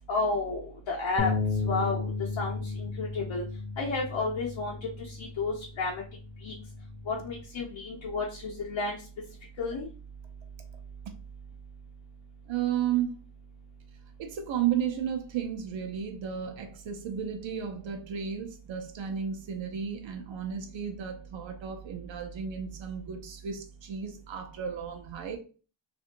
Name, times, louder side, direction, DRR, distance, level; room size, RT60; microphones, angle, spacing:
voice 1, 0.1-1.3 1.7-2.0 2.4-3.4 3.8-6.0 6.4-6.5 7.1-9.0 9.6-9.9, left 3 dB, 85° left, 0.7 m, -31 dB
sound 1, 1.2-7.4, left 4 dB, 35° left, 0.4 m, -34 dB
voice 2, 12.5-13.2 14.2-25.4, right 8 dB, 80° right, 0.6 m, -33 dB
2.5 x 2.5 x 2.7 m
wide cardioid pair, 110°, 45 cm